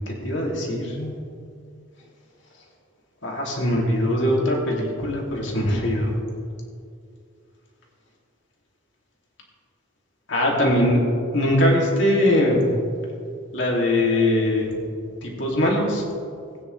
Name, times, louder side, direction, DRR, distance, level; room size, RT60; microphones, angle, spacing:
voice 1, 0.2-1.1 3.2-6.2 10.3-11.0 11.3-12.7 13.5-14.8 15.2-16.0, left 1 dB, 65° left, -1 dB, 2.5 m, -21 dB
17.0 x 9.6 x 3.3 m, 2.3 s
head